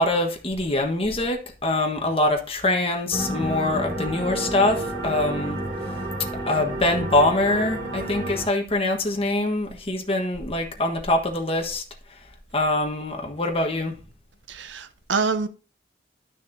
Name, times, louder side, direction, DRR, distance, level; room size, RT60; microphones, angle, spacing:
voice 1, 0.0-5.6 6.5-11.8 12.5-13.9, left 2 dB, 30° left, 1.3 m, -24 dB
sound 1, 3.1-8.5, right 1 dB, 60° right, 3.4 m, -30 dB
voice 2, 14.5-15.5, right 4 dB, 75° right, 0.7 m, -26 dB
12.0 x 6.3 x 2.7 m
head